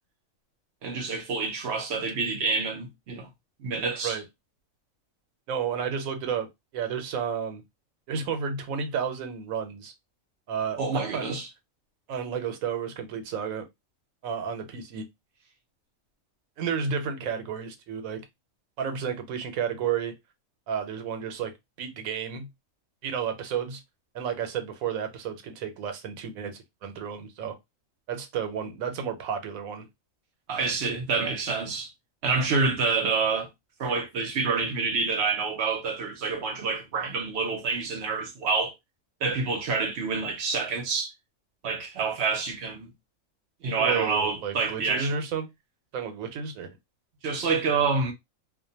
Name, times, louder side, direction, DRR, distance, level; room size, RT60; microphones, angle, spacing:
voice 1, 0.8-3.3 3.6-4.2 10.8-11.5 30.5-31.9 32.2-33.5 33.8-38.7 39.2-41.1 41.6-42.9 43.6-45.1 47.2-48.1, right 4 dB, 60° right, 0.8 m, -27 dB
voice 2, 5.5-7.6 8.1-9.9 10.5-11.4 12.1-13.7 14.2-15.0 16.6-18.3 18.8-20.1 20.7-22.5 23.0-23.8 24.1-27.6 28.1-29.9 43.8-45.5 45.9-46.8, right 7 dB, 90° right, 1.1 m, -32 dB
2.5 x 2.2 x 2.6 m
omnidirectional pair, 1.4 m